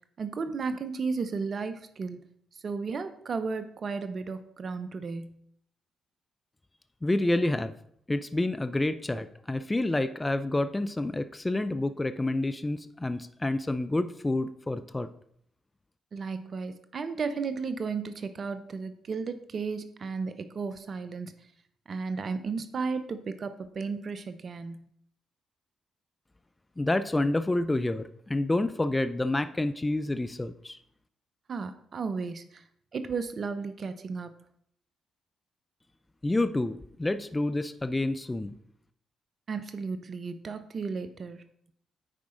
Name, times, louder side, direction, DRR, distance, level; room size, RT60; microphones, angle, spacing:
voice 1, 0.2-2.2 2.5-5.4 16.1-21.3 21.9-24.9 31.5-32.6 32.9-34.3 39.5-41.4, right 4 dB, 50° right, 11 dB, 0.6 m, -34 dB
voice 2, 7.0-7.7 8.1-15.1 26.8-30.8 36.2-38.6, left 2 dB, 20° left, 11 dB, 0.5 m, -28 dB
9.9 x 4.8 x 3.9 m, 0.68 s
hypercardioid pair, 45°, 0 cm